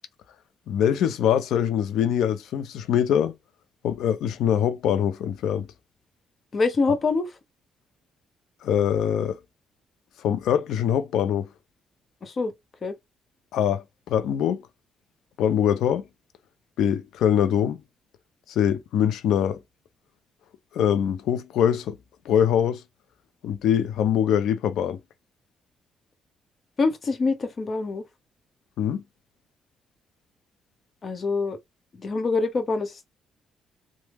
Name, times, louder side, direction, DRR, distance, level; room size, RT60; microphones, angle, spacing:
voice 1, 0.7-3.3 3.8-5.7 8.6-9.4 10.2-11.5 13.5-14.6 15.4-16.0 16.8-17.8 18.5-19.6 20.7-22.0 22.3-22.8 23.4-25.0 28.8-29.0, left 9 dB, 80° left, 0.5 m, -23 dB
voice 2, 6.5-7.3 12.2-12.5 12.8-12.9 26.8-28.0 31.0-31.6 31.9-33.1, left 3 dB, 40° left, 0.8 m, -25 dB
3.4 x 2.1 x 3.0 m
cardioid pair, 90°, 0 cm